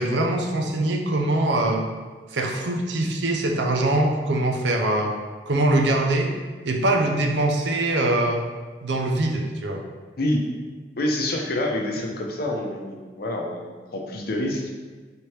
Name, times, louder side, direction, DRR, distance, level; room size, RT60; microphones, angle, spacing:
voice 1, 0.0-1.8 2.3-5.2 5.5-6.3 6.6-8.4 8.8-9.8, right 2 dB, 80° right, 3 dB, 0.6 m, -23 dB
voice 2, 11.0-14.7, left 1 dB, 55° left, 1 dB, 0.6 m, -27 dB
4.4 x 3.3 x 3.2 m, 1.4 s
head